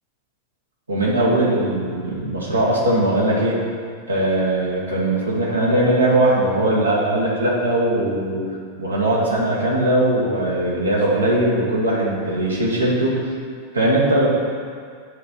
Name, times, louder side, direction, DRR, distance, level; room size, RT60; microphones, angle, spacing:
voice 1, 0.9-3.6 4.1-8.4 8.8-13.3 13.7-14.3, right 1 dB, 80° right, -5 dB, 1.4 m, -20 dB
9.6 x 3.4 x 5.5 m, 2.1 s
figure-of-eight pair, 90°, 0 cm